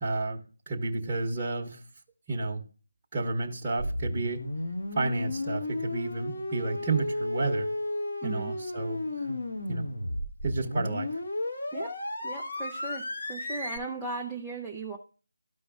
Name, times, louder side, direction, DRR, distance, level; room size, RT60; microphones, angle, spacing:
voice 1, 0.0-0.4 0.7-1.8 2.3-2.6 3.1-4.5 4.9-7.7 8.2-9.4 9.7-9.9 10.4-11.1, right 3 dB, 20° right, -6 dB, 1.1 m, -31 dB
sound 1, 3.8-13.8, left 1 dB, 55° left, 1.5 m, -33 dB
voice 2, 8.2-8.5 11.7-11.9 12.2-15.0, right 3 dB, ahead, -5 dB, 0.6 m, -37 dB
13.5 x 5.1 x 2.4 m, 0.39 s
figure-of-eight pair, 160°, 0 cm